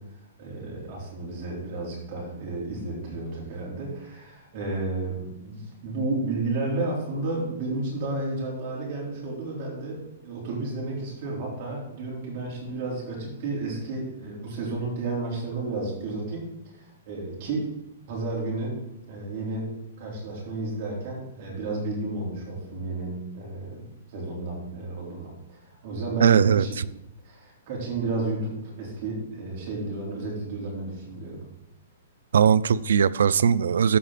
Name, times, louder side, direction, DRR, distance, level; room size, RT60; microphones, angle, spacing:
voice 1, 0.4-16.7 17.1-17.7 18.1-18.8 19.1-19.7 20.0-26.8 27.2-31.4, right 2 dB, 35° right, 3.8 m, -32 dB
voice 2, 26.2-26.8 32.3-34.0, right 7 dB, 80° right, 0.4 m, -20 dB
14.0 x 5.1 x 4.1 m
hypercardioid pair, 170°, 0 cm